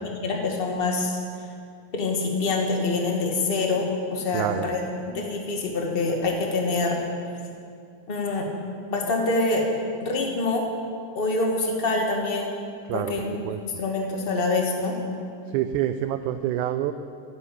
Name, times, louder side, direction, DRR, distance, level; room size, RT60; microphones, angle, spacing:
voice 1, 0.1-1.2 1.9-4.8 5.1-7.0 8.1-8.5 8.9-9.6 10.0-10.6 11.1-12.5 12.9-13.4 13.6-14.9, left 3 dB, 25° left, 0 dB, 1.4 m, -25 dB
voice 2, 4.3-4.7 12.9-13.1 13.5-13.6 15.5-16.9, right 12 dB, 80° right, 10 dB, 1.9 m, -26 dB
15.0 x 9.5 x 8.4 m, 2.4 s
omnidirectional pair, 3.7 m